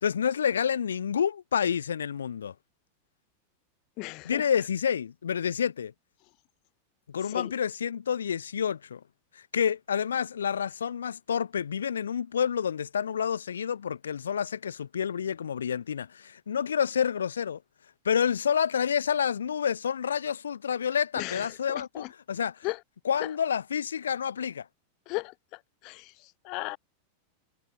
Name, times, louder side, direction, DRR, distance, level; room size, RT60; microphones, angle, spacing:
voice 1, 0.0-2.5 4.2-5.9 7.1-9.0 9.3-17.6 18.0-22.6 23.0-24.7, left 7 dB, 70° left, 2.8 m, -29 dB
voice 2, 4.0-4.5 7.3-7.5 21.2-22.1 22.6-22.8 25.1-26.8, left 26 dB, 40° left, 4.6 m, -36 dB
figure-of-eight pair, 90°, 0 cm